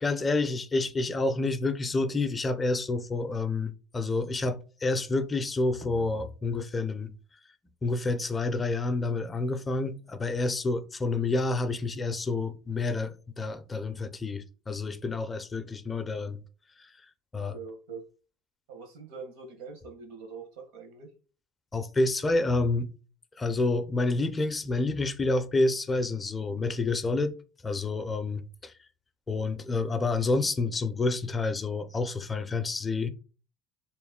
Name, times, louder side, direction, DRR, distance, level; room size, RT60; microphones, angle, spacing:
voice 1, 0.0-7.1 7.8-16.4 17.3-17.5 21.7-22.9 23.4-27.3 27.6-28.7 29.3-33.1, left 3 dB, 15° left, 0.4 m, -28 dB
voice 2, 17.3-18.0 18.7-21.1, right 5 dB, 85° right, 1.3 m, -43 dB
3.4 x 3.0 x 3.6 m
cardioid pair, 140°, 0 cm